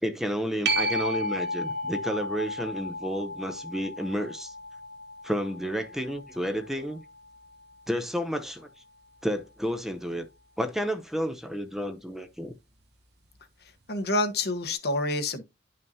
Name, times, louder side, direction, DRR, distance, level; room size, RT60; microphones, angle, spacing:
voice 1, 0.0-4.5 5.2-7.0 7.9-8.7 9.2-10.3 10.6-12.5, equal, ahead, 0.7 m, -31 dB
sound 1, 0.7-7.8 13.4-13.5, equal, 60° right, 1.4 m, -33 dB
voice 2, 13.9-15.4, left 2 dB, 55° left, 1.2 m, -27 dB
11.0 x 5.4 x 2.8 m
head